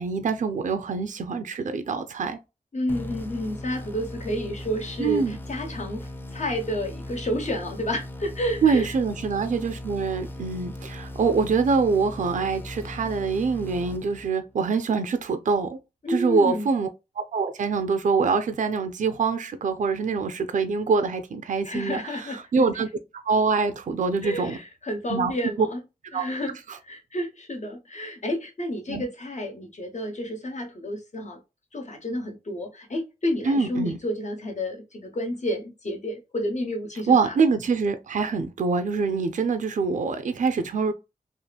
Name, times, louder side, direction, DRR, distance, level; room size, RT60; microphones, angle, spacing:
voice 1, 0.0-2.4 5.0-5.4 8.6-15.8 16.1-16.9 17.2-22.9 23.3-24.6 25.1-25.3 25.6-25.7 26.1-26.2 26.7-26.8 28.9-29.0 33.4-34.0 37.1-40.9, right 4 dB, 55° right, 0.4 m, -24 dB
voice 2, 2.7-8.9 16.0-16.7 21.6-22.4 24.2-25.8 26.1-26.5 26.8-31.4 31.7-37.4, left 1 dB, 50° left, 0.9 m, -30 dB
sound 1, 2.9-14.6, left 1 dB, 15° left, 0.4 m, -38 dB
2.8 x 2.4 x 2.2 m
wide cardioid pair, 65°, 16 cm